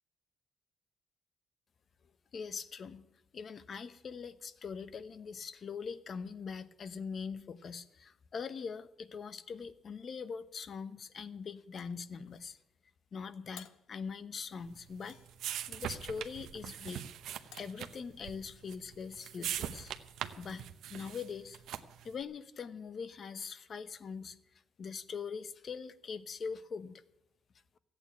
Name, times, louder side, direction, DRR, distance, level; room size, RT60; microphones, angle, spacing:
voice 1, 2.3-3.0 3.3-12.6 13.1-15.2 15.7-17.0 17.6-19.9 20.4-21.6 22.0-24.4 24.8-27.0, left 6 dB, 50° left, 13 dB, 0.9 m, -42 dB
sound 1, 11.8-12.6 13.6-13.9 15.0-15.6 17.5-17.8, left 10 dB, 85° left, 0.7 m, -56 dB
sound 2, 14.6-22.1, right 10 dB, 80° right, 0.8 m, -42 dB
14.5 x 8.9 x 9.2 m, 0.89 s
cardioid pair, 90°, 0 cm